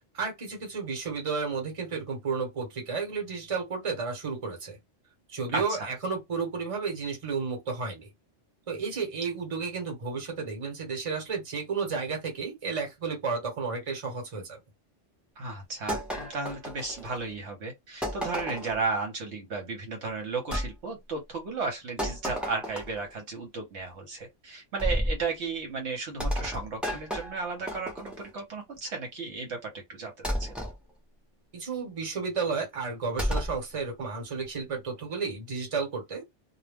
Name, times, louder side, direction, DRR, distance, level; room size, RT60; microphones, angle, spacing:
voice 1, 0.1-4.8 5.3-8.1 8.7-14.6 31.5-36.2, right 5 dB, 30° right, 0.9 m, -32 dB
voice 2, 5.5-5.9 15.4-30.5, right 4 dB, 70° right, 1.0 m, -34 dB
sound 1, 15.9-17.3 18.0-18.8 20.5-20.7 22.0-23.1 24.8-25.2 26.2-28.3 30.2-30.7 33.2-33.6, equal, ahead, 0.5 m, -32 dB
2.2 x 2.1 x 3.3 m
omnidirectional pair, 1.2 m